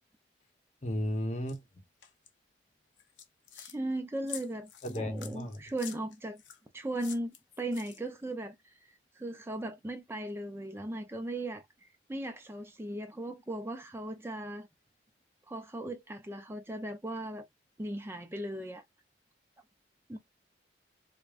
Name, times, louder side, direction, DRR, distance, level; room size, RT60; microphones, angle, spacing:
voice 1, 0.8-1.6 4.8-5.6, equal, 40° left, 0.9 m, -34 dB
sound 1, 1.5-1.6 2.0-2.3 3.0-3.8 4.3-6.6 7.0-8.2, left 9 dB, 80° left, 0.8 m, -47 dB
voice 2, 3.5-4.7 5.0-6.4 6.7-7.3 7.6-14.7 15.5-17.5 17.8-18.8 20.1-20.2, right 1 dB, 15° right, 0.4 m, -37 dB
4.9 x 2.1 x 2.4 m
head